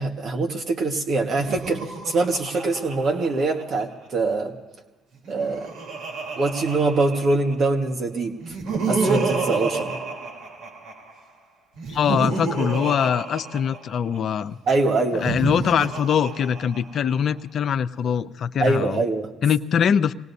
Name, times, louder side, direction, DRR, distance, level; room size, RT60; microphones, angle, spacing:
voice 1, 0.0-4.5 5.3-5.7 6.3-8.5 8.8-9.9 14.7-15.3 18.6-19.3, right 3 dB, 55° right, 3 dB, 1.5 m, -23 dB
Laughter, 1.3-4.1 5.1-7.7 8.4-11.1 11.8-14.2 15.0-17.2, right 4 dB, 75° right, 3.5 m, -30 dB
voice 2, 11.9-14.6 15.1-19.0 19.4-20.1, left 8 dB, 60° left, 14 dB, 0.6 m, -23 dB
25.5 x 19.5 x 2.7 m, 1.2 s
supercardioid pair, 65°, 0 cm